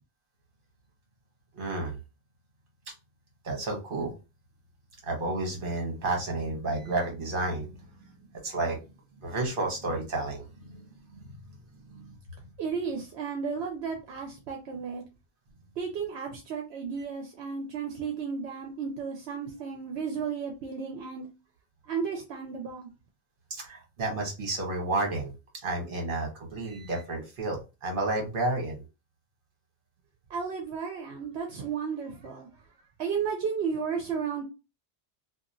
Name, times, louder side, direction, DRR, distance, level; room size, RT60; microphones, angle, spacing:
voice 1, 1.5-2.0 3.4-4.1 5.0-7.7 8.4-8.8 9.2-11.2 11.9-12.2 23.5-25.3 25.6-28.8, right 2 dB, 55° right, 1.2 m, -31 dB
voice 2, 12.6-15.0 15.8-21.3 21.9-22.9 30.3-32.5 33.0-34.4, right 6 dB, 75° right, 0.9 m, -33 dB
2.8 x 2.5 x 2.5 m
omnidirectional pair, 1.1 m